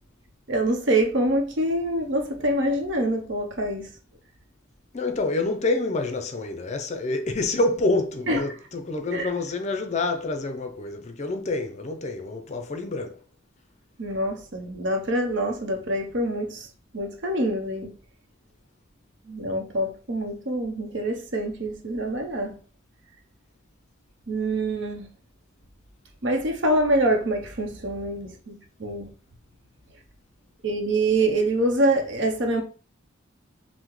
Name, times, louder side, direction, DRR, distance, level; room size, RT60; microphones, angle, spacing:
voice 1, 0.5-3.9 8.3-8.4 9.1-9.3 14.0-16.7 16.9-17.9 19.3-22.6 24.3-25.1 26.2-29.1 30.6-32.6, right 1 dB, 60° right, 0.8 m, -25 dB
voice 2, 4.9-13.2, left 2 dB, 35° left, 0.5 m, -27 dB
5.7 x 2.1 x 3.1 m
head